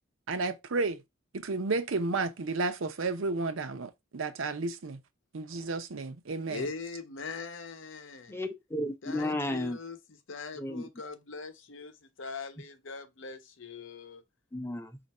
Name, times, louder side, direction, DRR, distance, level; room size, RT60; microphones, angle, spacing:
voice 1, 0.3-1.0 1.4-5.0 5.3-6.7, right 3 dB, 80° right, 0.6 m, -32 dB
voice 2, 6.5-8.4 9.0-14.2, left 4 dB, 70° left, 0.7 m, -41 dB
voice 3, 8.3-9.8 10.6-10.9 14.5-15.0, left 1 dB, 10° left, 0.6 m, -33 dB
4.4 x 2.6 x 4.1 m
head